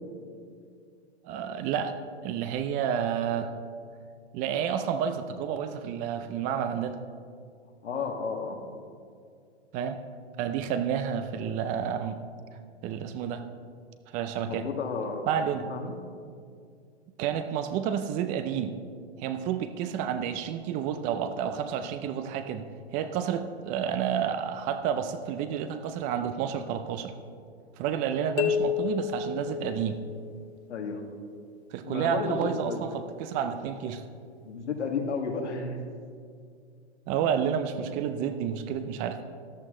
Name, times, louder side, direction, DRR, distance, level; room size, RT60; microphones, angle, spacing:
voice 1, 1.2-2.0 2.2-3.5 4.3-7.0 9.7-10.0 10.4-12.2 12.8-13.4 14.1-14.7 15.3-15.7 17.2-18.8 19.2-27.1 27.8-30.0 31.7-34.1 37.1-39.2, right 8 dB, 25° right, 10 dB, 0.4 m, -30 dB
voice 2, 7.8-8.6 14.5-15.9 30.7-31.0 31.9-32.8 34.4-35.8, left 4 dB, 85° left, 3 dB, 1.9 m, -32 dB
sound 1, 28.4-30.3, left 8 dB, 30° left, 0.7 m, -30 dB
14.0 x 11.0 x 3.8 m, 2.3 s
hypercardioid pair, 130°, 34 cm